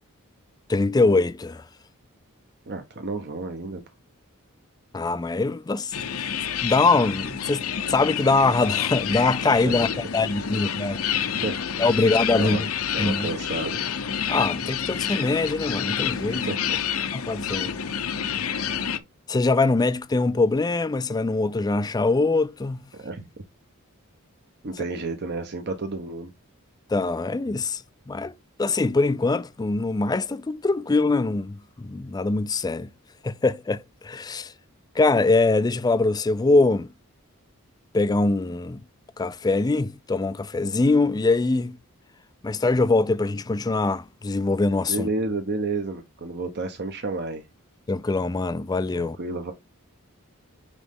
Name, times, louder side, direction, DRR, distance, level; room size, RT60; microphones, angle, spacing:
voice 1, 0.7-1.6 4.9-5.9 6.6-9.9 10.1-11.4 11.8-12.7 13.0-13.3 14.3-16.5 17.1-17.7 19.3-22.8 26.9-28.3 28.6-32.9 33.2-34.5 35.0-36.9 37.9-38.8 39.2-41.8 42.4-45.1 47.9-49.2, left 3 dB, 20° left, 0.3 m, -23 dB
voice 2, 2.7-3.8 9.5-10.0 11.3-11.6 11.9-12.6 12.9-13.8 16.3-16.8 23.0-23.3 24.6-26.3 44.9-47.5 48.9-49.5, right 3 dB, 50° right, 0.9 m, -31 dB
sound 1, 5.9-19.0, left 8 dB, 75° left, 0.8 m, -28 dB
9.5 x 3.2 x 3.6 m
head